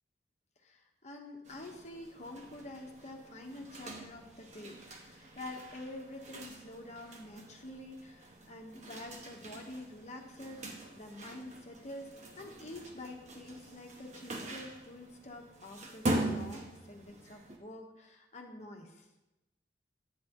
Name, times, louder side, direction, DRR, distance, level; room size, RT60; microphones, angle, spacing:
voice 1, 0.6-12.1 12.4-19.1, left 1 dB, 40° left, 2 dB, 1.1 m, -47 dB
sound 1, 1.4-17.6, right 1 dB, 40° right, 1.1 m, -42 dB
10.0 x 8.7 x 3.0 m, 0.96 s
head